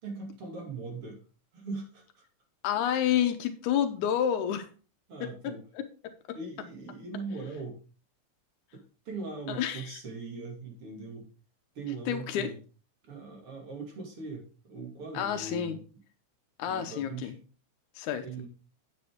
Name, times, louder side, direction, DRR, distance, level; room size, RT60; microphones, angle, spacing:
voice 1, 0.0-1.2 1.5-2.0 5.1-5.6 6.3-7.8 8.7-11.3 11.7-12.5 13.0-15.8 16.7-17.3 18.2-18.5, right 4 dB, 50° right, 1 dB, 3.1 m, -40 dB
voice 2, 2.6-4.7 5.2-6.4 9.5-10.0 12.1-12.5 15.1-15.8 16.6-17.4 18.0-18.3, left 9 dB, 85° left, 7 dB, 2.3 m, -30 dB
9.5 x 8.0 x 3.6 m, 0.38 s
omnidirectional pair, 3.3 m